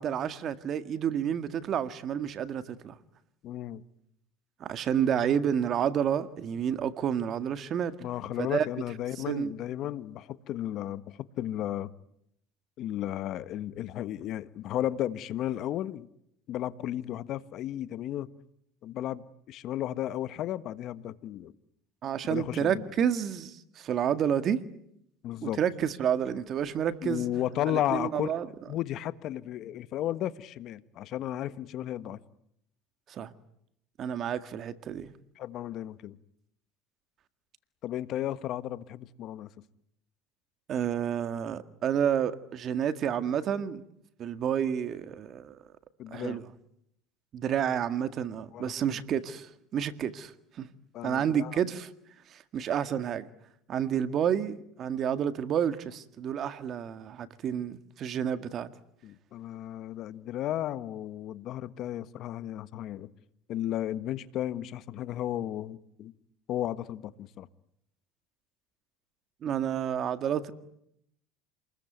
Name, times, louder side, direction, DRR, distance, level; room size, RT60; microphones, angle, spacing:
voice 1, 0.0-2.9 4.6-8.0 8.4-8.7 9.3-9.5 22.0-24.6 25.4-27.3 27.7-28.5 33.1-33.3 34.0-35.1 40.7-43.8 44.2-45.6 46.1-46.5 47.3-50.3 50.6-50.7 51.0-51.9 52.3-53.3 53.7-58.7 69.4-70.5, right 9 dB, 40° right, 1.9 m, -30 dB
voice 2, 3.4-3.8 8.0-11.9 12.8-16.1 16.5-18.3 18.8-21.5 22.3-22.9 25.2-25.6 27.0-28.3 28.7-32.2 35.4-36.2 37.8-39.5 46.0-46.4 48.5-49.0 50.9-51.6 59.0-63.1 63.5-66.1 66.5-67.5, left 12 dB, 50° left, 1.3 m, -34 dB
28.0 x 21.0 x 9.3 m
supercardioid pair, 120°, 0 cm